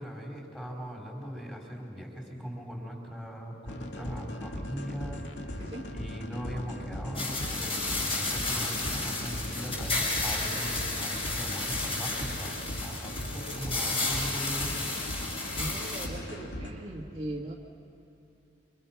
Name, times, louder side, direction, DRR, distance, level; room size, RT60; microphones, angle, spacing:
voice 1, 0.0-5.2 5.9-14.8, equal, 5° left, -1 dB, 4.4 m, -40 dB
sound 1, 3.7-16.7, equal, 85° left, 2.1 m, -39 dB
voice 2, 5.6-5.9 15.6-17.5, right 1 dB, 30° right, -3 dB, 1.8 m, -39 dB
sound 2, 7.1-16.1, left 2 dB, 30° left, 6.1 m, -32 dB
26.5 x 26.0 x 5.9 m, 2.8 s
head